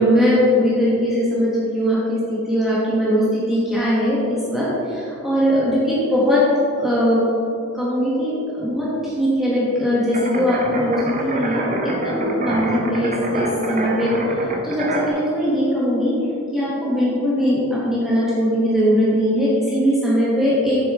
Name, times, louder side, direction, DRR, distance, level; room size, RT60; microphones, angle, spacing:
voice 1, 0.0-6.4 6.8-7.2 7.7-16.1 16.5-20.8, equal, ahead, -9 dB, 1.4 m, -20 dB
sound 1, 10.1-15.1, right 1 dB, 35° right, 0.9 m, -26 dB
8.2 x 6.9 x 3.7 m, 2.7 s
head